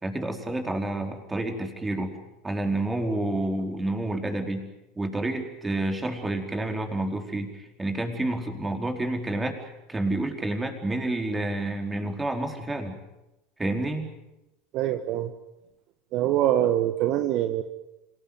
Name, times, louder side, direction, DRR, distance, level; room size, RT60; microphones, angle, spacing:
voice 1, 0.0-2.1 2.4-4.6 5.0-13.0 13.6-14.1, right 2 dB, 15° right, 4 dB, 4.6 m, -29 dB
voice 2, 14.7-15.3 16.1-17.6, right 12 dB, 50° right, 9 dB, 1.4 m, -24 dB
26.5 x 18.5 x 9.5 m, 0.92 s
figure-of-eight pair, 80°, 0 cm